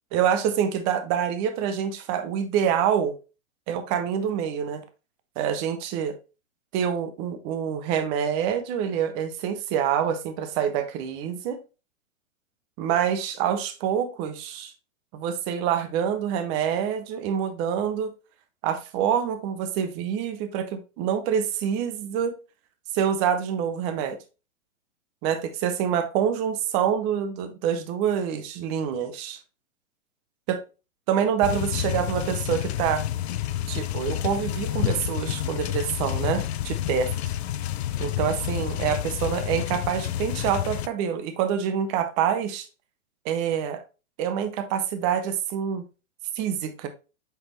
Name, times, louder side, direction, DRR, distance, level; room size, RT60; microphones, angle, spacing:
voice 1, 0.1-3.2 3.7-4.8 5.4-6.2 6.7-11.6 12.8-14.7 15.1-18.1 18.6-22.4 22.9-24.2 25.2-29.4 30.5-30.6 31.1-33.0 33.7-37.1 38.0-42.7 43.2-43.8 44.2-45.9 46.3-46.9, right 8 dB, 15° right, 0.4 m, -26 dB
sound 1, 31.4-40.9, left 12 dB, 50° left, 0.6 m, -29 dB
7.9 x 4.1 x 3.1 m
hypercardioid pair, 145°, 41 cm